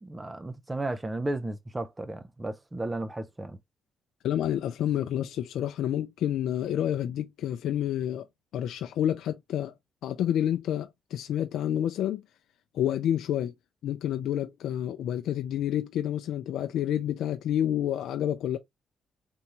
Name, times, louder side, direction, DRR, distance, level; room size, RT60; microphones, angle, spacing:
voice 1, 0.0-3.6, right 2 dB, 15° right, 0.4 m, -34 dB
voice 2, 4.2-8.3 8.5-9.7 10.0-12.2 12.7-13.5 13.8-18.6, left 11 dB, 80° left, 0.4 m, -29 dB
3.4 x 2.9 x 2.8 m
cardioid pair, 90°, 0 cm